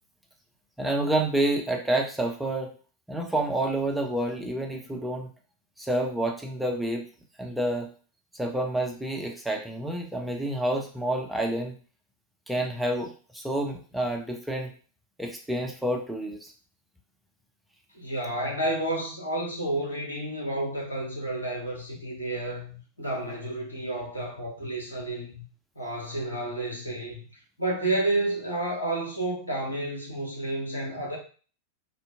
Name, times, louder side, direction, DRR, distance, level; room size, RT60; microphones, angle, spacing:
voice 1, 0.8-2.7 3.1-5.3 5.8-7.1 7.4-7.9 8.3-11.7 12.5-14.7 15.2-16.5, right 1 dB, 5° right, 1 dB, 0.5 m, -28 dB
voice 2, 17.9-25.4 25.8-27.2 27.6-31.2, right 1 dB, 80° left, -3 dB, 1.0 m, -30 dB
2.7 x 2.5 x 2.4 m, 0.39 s
figure-of-eight pair, 90°, 0 cm